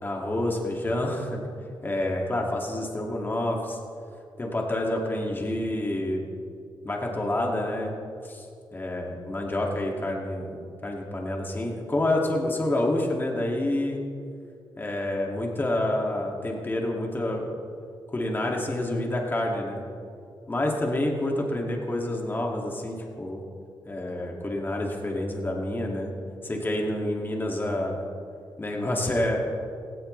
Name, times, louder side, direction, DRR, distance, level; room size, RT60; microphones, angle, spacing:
voice 1, 0.0-1.5 1.8-3.8 4.4-6.2 6.8-7.9 8.2-8.4 8.7-10.5 10.8-14.0 14.8-17.5 18.1-19.8 20.5-23.4 23.9-26.1 26.4-28.0 28.6-29.4, left 1 dB, 25° left, 0 dB, 2.5 m, -28 dB
17.0 x 17.0 x 3.4 m, 2.4 s
cardioid pair, 95°, 8 cm